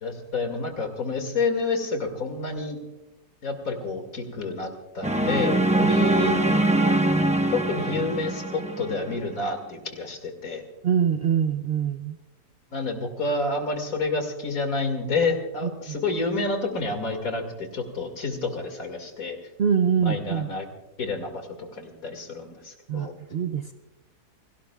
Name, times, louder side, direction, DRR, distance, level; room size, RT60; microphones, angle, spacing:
voice 1, 0.0-2.8 3.4-4.7 4.9-6.4 7.5-10.6 12.7-19.4 20.0-20.7 21.0-23.1, left 3 dB, 60° left, 5 dB, 2.6 m, -29 dB
sound 1, 5.0-9.2, right 2 dB, 10° right, 0.3 m, -23 dB
voice 2, 10.8-12.2 15.6-15.9 19.6-20.5 22.9-23.7, right 7 dB, 60° right, 5 dB, 0.6 m, -24 dB
29.0 x 18.0 x 2.4 m, 1.1 s
omnidirectional pair, 1.7 m